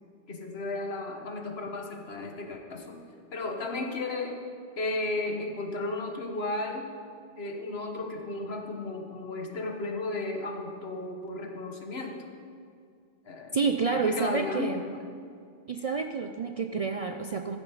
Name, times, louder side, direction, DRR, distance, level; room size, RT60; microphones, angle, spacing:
voice 1, 0.3-3.0 3.3-4.4 4.8-6.9 7.4-12.3 13.2-13.6 13.9-15.1, left 2 dB, 70° left, 3 dB, 1.4 m, -34 dB
voice 2, 13.5-14.9 15.7-17.6, right 5 dB, 50° right, 6 dB, 0.4 m, -29 dB
14.0 x 7.2 x 5.6 m, 2.3 s
omnidirectional pair, 1.1 m